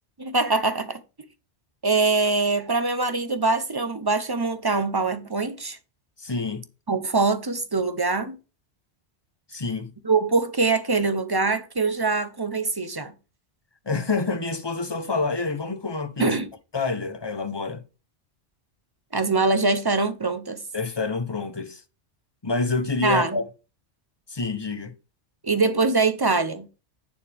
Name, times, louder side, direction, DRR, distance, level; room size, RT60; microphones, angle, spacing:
voice 1, 0.2-1.0 1.8-5.8 6.9-8.4 10.0-13.1 16.2-16.5 19.1-20.6 23.0-23.4 25.4-26.7, right 3 dB, 20° right, 0.8 m, -23 dB
voice 2, 6.2-6.6 9.5-9.9 13.9-16.3 16.7-17.8 20.7-21.8 22.4-23.5 24.3-24.9, left 3 dB, 25° left, 0.9 m, -27 dB
9.0 x 7.3 x 3.5 m
omnidirectional pair, 1.2 m